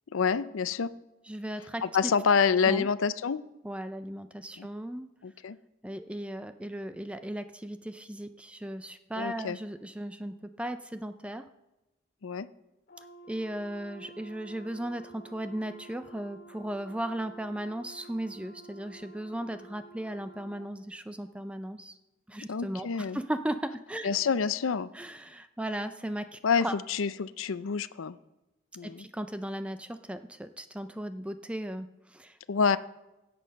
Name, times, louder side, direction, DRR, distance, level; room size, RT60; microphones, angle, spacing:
voice 1, 0.1-0.9 1.8-3.4 4.6-4.7 5.2-5.6 9.2-9.6 12.2-12.5 22.5-23.2 24.0-24.9 26.4-28.2 28.8-29.0 32.5-32.8, left 6 dB, 85° left, 15 dB, 0.5 m, -27 dB
voice 2, 1.3-1.8 2.6-2.9 3.6-5.1 5.8-11.4 13.3-22.0 22.3-24.1 24.9-26.8 28.8-32.4, right 1 dB, 5° right, 10 dB, 0.4 m, -36 dB
Brass instrument, 12.9-20.6, right 2 dB, 50° left, 2.4 m, -51 dB
16.5 x 7.8 x 5.2 m, 1.0 s
head